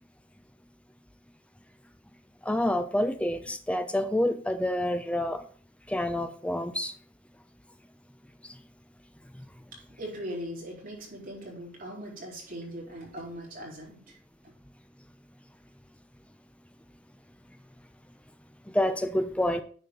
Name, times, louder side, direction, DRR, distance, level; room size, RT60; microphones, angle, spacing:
voice 1, 2.5-5.4 5.9-6.9 18.7-19.6, left 1 dB, 5° left, 9 dB, 0.7 m, -28 dB
voice 2, 9.7-14.2, equal, 45° right, -3 dB, 4.0 m, -40 dB
10.0 x 4.4 x 5.3 m, 0.44 s
head